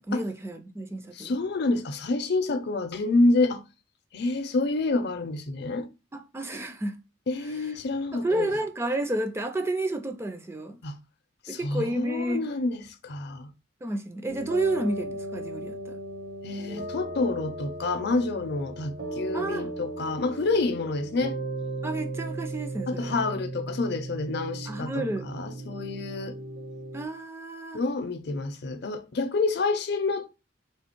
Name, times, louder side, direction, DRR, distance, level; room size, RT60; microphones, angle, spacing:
voice 1, 0.0-1.4 6.1-7.0 8.1-10.8 11.5-12.4 13.8-16.0 19.3-19.7 21.8-23.2 24.7-25.3 26.9-27.8, right 1 dB, 15° right, 0.4 m, -31 dB
voice 2, 1.1-3.6 4.1-5.9 7.3-8.5 10.8-11.0 11.4-13.5 16.4-21.4 22.9-26.4 27.7-30.3, left 3 dB, 60° left, 0.6 m, -28 dB
sound 1, 14.3-27.0, right 1 dB, 80° right, 1.2 m, -36 dB
3.4 x 3.1 x 4.3 m
head